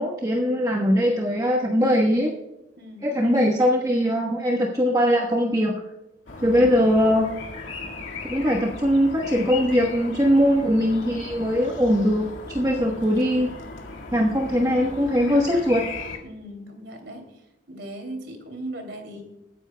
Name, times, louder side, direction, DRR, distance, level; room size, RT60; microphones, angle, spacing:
voice 1, 0.0-2.3 3.0-5.8 6.4-7.3 8.2-13.5 14.1-15.9, equal, 20° right, 0 dB, 1.1 m, -21 dB
voice 2, 2.8-3.2 6.4-6.8 16.2-17.2 17.7-19.2, right 1 dB, 65° right, 5 dB, 2.9 m, -38 dB
sound 1, 6.3-16.2, left 3 dB, 85° left, 2.0 m, -37 dB
21.0 x 9.9 x 2.3 m, 0.92 s
head